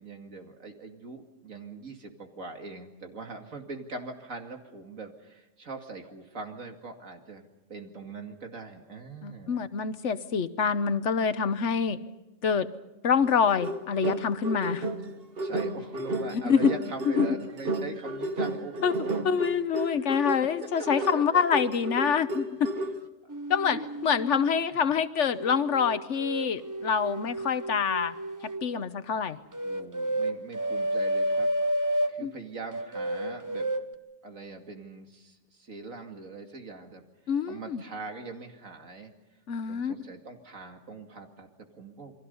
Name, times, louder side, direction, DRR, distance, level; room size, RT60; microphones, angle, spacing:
voice 1, 0.0-9.6 15.4-19.2 19.9-20.0 20.6-21.7 23.2-23.3 23.7-23.9 29.6-31.5 32.1-33.7 34.2-37.0 37.5-39.1 39.7-42.1, right 3 dB, 85° right, 4 dB, 2.7 m, -42 dB
voice 2, 9.2-12.0 12.4-12.7 13.0-14.9 16.3-16.7 17.2-17.3 18.8-18.9 19.2-22.7 23.5-28.1 28.6-29.4 32.2-32.3 37.3-37.8 39.5-39.9, left 6 dB, 65° left, 12 dB, 1.3 m, -26 dB
sound 1, 13.2-23.1, right 2 dB, 50° right, 1.4 m, -33 dB
sound 2, 23.3-24.7 25.4-28.7 29.5-32.2 32.7-33.9, right 1 dB, 20° right, 0.7 m, -31 dB
28.5 x 22.5 x 5.5 m, 1.0 s
omnidirectional pair, 1.3 m